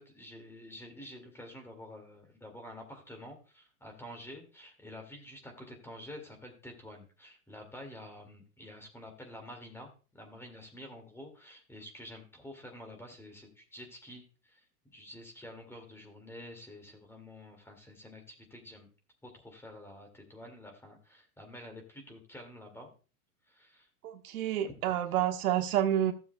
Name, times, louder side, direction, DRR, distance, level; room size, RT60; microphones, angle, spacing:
voice 1, 0.0-14.7 14.9-18.9 19.2-22.9 23.5-23.9 24.8-25.0, left 1 dB, 5° left, 3 dB, 2.2 m, -49 dB
voice 2, 24.0-26.1, right 11 dB, 65° right, 6 dB, 1.3 m, -29 dB
15.5 x 7.1 x 2.2 m, 0.35 s
hypercardioid pair, 130°, 46 cm